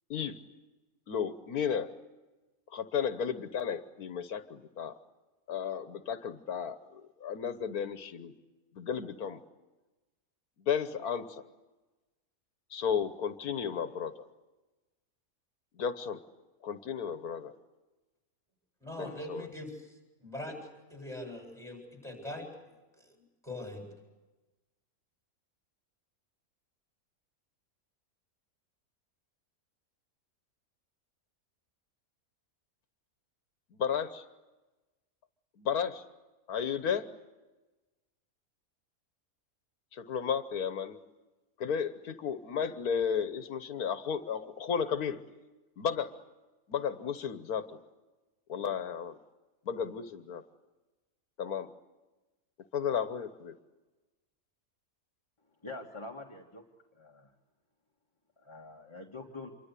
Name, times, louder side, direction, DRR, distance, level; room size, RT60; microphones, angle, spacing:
voice 1, 1.1-1.9 2.7-4.9 5.5-8.3 8.8-9.4 10.7-11.4 12.7-14.2 15.8-16.2 16.6-17.5 19.0-19.5 33.7-34.2 35.6-36.0 36.5-37.1 39.9-41.0 41.6-45.2 45.8-46.1 46.7-47.8 48.5-49.2 49.7-50.4 51.4-51.7 52.7-53.6, left 7 dB, 85° left, 10 dB, 1.6 m, -33 dB
voice 2, 18.8-19.7 20.2-22.5 23.0-23.1 23.4-23.9, left 1 dB, ahead, 2 dB, 7.9 m, -41 dB
voice 3, 55.6-56.6 57.0-57.3 58.4-59.5, left 2 dB, 20° left, 1 dB, 1.9 m, -45 dB
27.5 x 24.0 x 8.3 m, 1.1 s
omnidirectional pair, 1.5 m